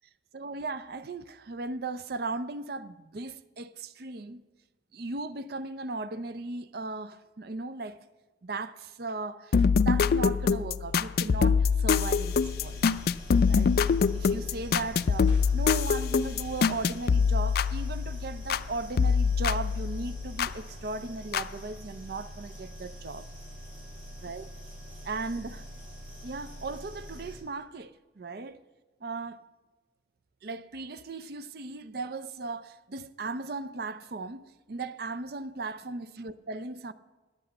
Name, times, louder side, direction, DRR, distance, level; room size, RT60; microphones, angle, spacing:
voice 1, 0.3-4.4 4.9-8.0 8.4-12.8 13.4-13.8 14.1-23.3 24.2-24.4 25.0-25.7 26.2-28.6 29.0-29.4 30.4-36.9, right 3 dB, 55° right, 0.5 m, -37 dB
sound 1, 9.5-18.7 19.0-20.6 21.3-21.4, left 5 dB, 55° left, 0.3 m, -25 dB
sound 2, 12.2-27.4, equal, 25° right, 4.2 m, -45 dB
10.5 x 8.0 x 8.6 m
head